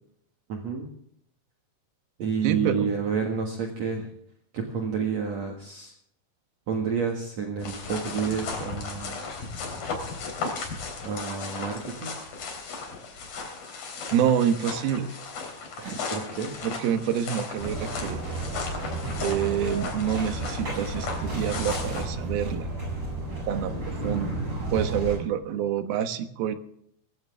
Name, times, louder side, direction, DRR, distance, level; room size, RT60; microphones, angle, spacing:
voice 1, 0.5-0.9 2.2-4.1 4.5-5.9 6.7-9.2 11.0-12.2 15.8-16.5, right 6 dB, 55° right, 2 dB, 2.7 m, -30 dB
voice 2, 2.4-3.0 14.1-15.2 16.6-18.2 19.2-22.7 23.5-24.4 24.7-26.6, right 9 dB, 80° right, 8 dB, 3.1 m, -27 dB
sound 1, 7.6-22.1, left 4 dB, 75° left, 5.3 m, -36 dB
sound 2, 17.6-25.1, right 2 dB, 35° right, 8.5 m, -32 dB
20.0 x 16.0 x 3.5 m, 0.69 s
omnidirectional pair, 4.2 m